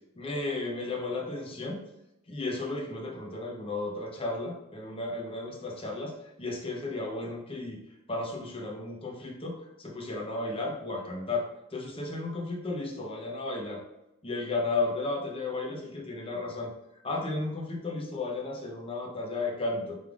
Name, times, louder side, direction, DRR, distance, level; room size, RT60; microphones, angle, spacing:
voice 1, 0.2-1.8 2.3-7.8 8.1-13.8 14.2-20.0, left 2 dB, 25° left, -1 dB, 0.8 m, -34 dB
5.3 x 3.3 x 2.5 m, 0.91 s
head